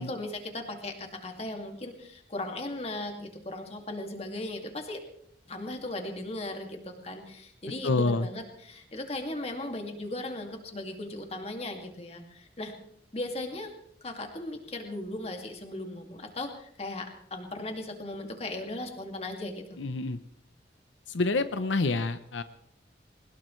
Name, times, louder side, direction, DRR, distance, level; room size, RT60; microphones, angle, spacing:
voice 1, 0.0-5.0 5.5-12.7 13.1-13.7 14.0-19.8, left 2 dB, 35° left, 4 dB, 2.3 m, -37 dB
voice 2, 7.8-8.3 19.8-20.2 21.1-22.4, left 3 dB, 85° left, 11 dB, 0.8 m, -27 dB
21.5 x 19.5 x 3.2 m, 0.70 s
head